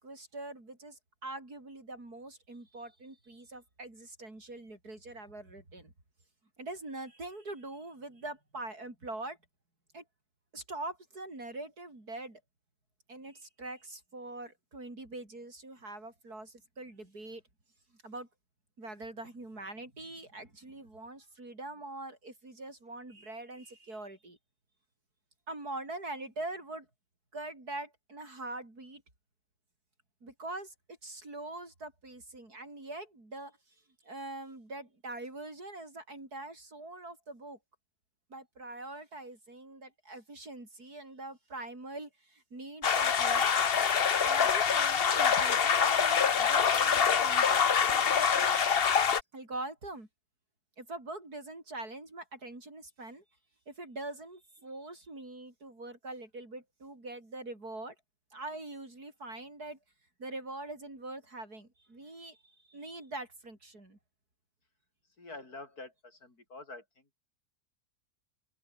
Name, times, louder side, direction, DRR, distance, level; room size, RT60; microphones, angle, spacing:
voice 1, 0.0-5.9 6.6-9.4 9.9-10.0 10.5-12.4 13.1-17.4 18.0-18.3 18.8-24.4 25.5-26.9 27.3-29.0 30.2-33.6 34.0-37.6 38.3-43.5 44.2-48.6 49.3-50.1 50.8-53.2 53.7-58.0 58.3-59.8 60.2-64.0, right 2 dB, 80° right, 7.4 m, -43 dB
sound 1, 42.8-49.2, left 7 dB, 40° left, 1.1 m, -25 dB
voice 2, 65.2-66.8, left 2 dB, 75° left, 5.6 m, -46 dB
open air
omnidirectional pair, 1.6 m